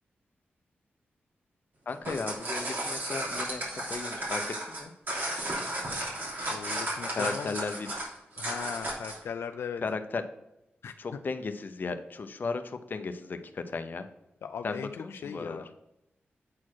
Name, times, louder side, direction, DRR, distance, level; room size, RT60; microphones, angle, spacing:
voice 1, 1.9-4.9 7.1-7.9 9.8-10.2 11.0-14.1 14.6-15.6, left 4 dB, 50° left, 8 dB, 0.7 m, -35 dB
sound 1, 1.9-9.2, right 1 dB, 55° right, 3.1 m, -34 dB
voice 2, 6.5-7.7 8.4-9.8 10.8-10.9 14.4-15.7, left 7 dB, 90° left, 8 dB, 0.4 m, -38 dB
8.6 x 4.3 x 4.6 m, 0.87 s
wide cardioid pair, 90°, 4 cm